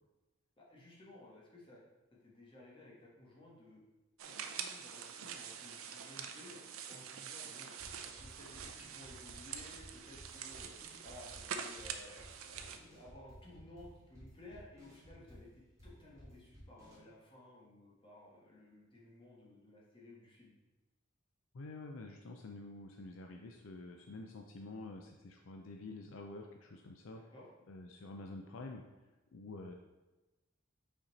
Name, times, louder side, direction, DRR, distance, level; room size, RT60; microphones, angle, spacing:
voice 1, 0.6-1.8 2.1-3.8 4.2-6.6 6.9-7.7 8.0-10.7 11.0-20.5 27.1-27.5, left 1 dB, 25° left, -4 dB, 1.5 m, -56 dB
sound 1, 4.2-12.8, right 7 dB, 85° right, 0.5 m, -46 dB
sound 2, 7.8-17.0, equal, 15° right, 1.9 m, -56 dB
voice 2, 21.5-27.2 27.7-28.8 29.3-29.7, left 2 dB, 75° left, 3 dB, 0.5 m, -48 dB
5.7 x 4.3 x 4.1 m, 1.1 s
head